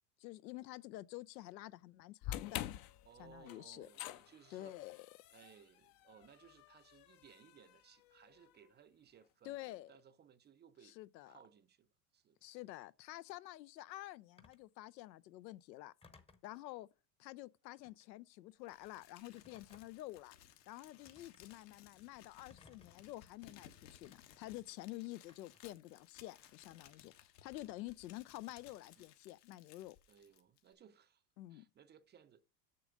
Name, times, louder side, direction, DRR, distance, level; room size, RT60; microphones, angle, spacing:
voice 1, 0.2-2.7 3.2-3.9 4.5-5.0 9.4-9.9 10.8-11.4 12.4-15.9 16.4-16.9 17.2-20.3 20.7-30.0 31.4-31.7, left 17 dB, 85° left, 0.7 m, -49 dB
sound 1, 2.2-8.5, left 13 dB, 45° left, 0.7 m, -48 dB
voice 2, 3.0-4.8 5.3-11.0 11.3-12.6 29.0-29.1 30.1-31.2 31.5-32.4, right 8 dB, 20° right, 0.5 m, -63 dB
Telephone, 14.4-14.7 16.0-16.5 17.8-18.1 19.3-20.1 21.0-21.4 22.5-23.1 24.0-24.2 25.3-25.7, left 4 dB, 10° left, 0.8 m, -63 dB
Crumpling crinkling, 18.7-30.7, left 11 dB, 70° left, 1.5 m, -62 dB
6.8 x 6.6 x 5.1 m
supercardioid pair, 110°, 50 cm